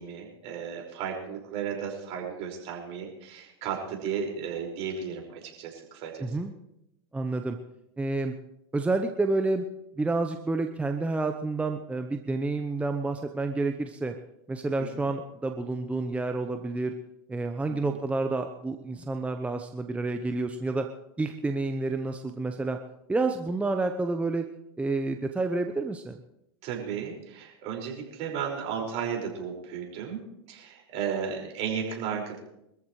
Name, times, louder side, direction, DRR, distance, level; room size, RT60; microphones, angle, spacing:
voice 1, 0.0-6.3 14.8-15.1 17.7-18.0 26.6-30.2 30.5-32.4, right 7 dB, 50° right, 0 dB, 5.4 m, -34 dB
voice 2, 6.2-6.5 7.1-7.6 8.0-8.3 8.7-9.6 10.0-14.1 14.5-16.9 17.3-20.9 21.2-22.8 23.1-24.4 24.8-26.2, right 3 dB, 10° right, 5 dB, 0.9 m, -29 dB
24.5 x 14.0 x 3.2 m, 0.83 s
hypercardioid pair, 105°, 14 cm